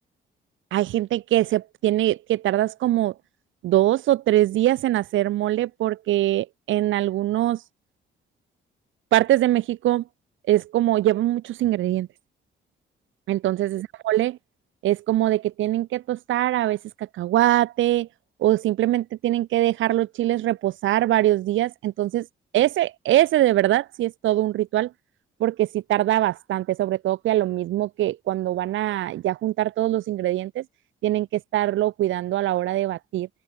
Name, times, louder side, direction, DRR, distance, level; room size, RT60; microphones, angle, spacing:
voice 1, 0.7-3.1 3.6-7.6 9.1-10.0 10.5-12.1 13.3-14.4 14.8-18.1 18.4-22.3 22.5-24.9 25.4-30.6 31.0-33.3, right 14 dB, 75° right, 0.8 m, -22 dB
open air
cardioid pair, 90°, 20 cm